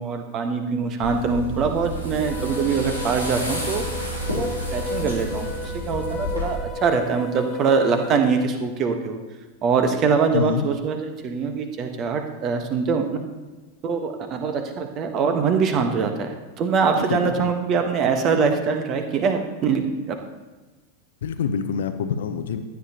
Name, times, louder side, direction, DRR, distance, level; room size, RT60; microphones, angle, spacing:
voice 1, 0.0-3.8 4.3-9.2 9.6-13.0 13.8-16.3 16.6-20.2, right 5 dB, 35° right, 6 dB, 1.2 m, -23 dB
sound 1, 1.0-6.6, equal, 85° right, 3.0 m, -30 dB
sound 2, 2.2-8.2, left 3 dB, 30° left, 0.8 m, -34 dB
voice 2, 10.3-10.7 16.9-17.5 21.2-22.6, left 7 dB, 60° left, 10 dB, 0.7 m, -26 dB
14.5 x 9.4 x 2.9 m, 1.2 s
figure-of-eight pair, 90°, 0 cm